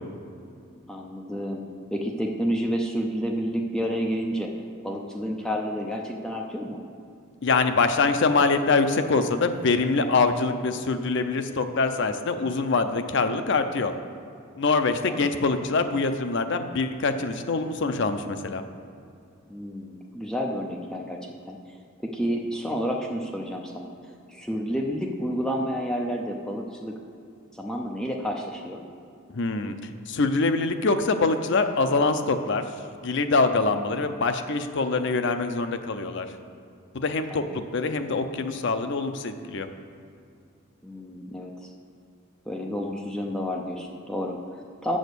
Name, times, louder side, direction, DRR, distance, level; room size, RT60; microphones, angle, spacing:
voice 1, 0.9-1.6 1.9-4.5 4.8-6.8 15.0-15.2 19.5-21.6 22.0-26.9 27.5-28.8 37.3-37.5 40.8-41.7 42.5-45.0, equal, 5° left, 0 dB, 0.6 m, -30 dB
voice 2, 7.4-13.9 14.6-18.6 29.3-32.6 33.0-36.3 36.9-39.7, left 3 dB, 60° left, 8 dB, 0.5 m, -24 dB
8.1 x 6.3 x 6.8 m, 2.5 s
head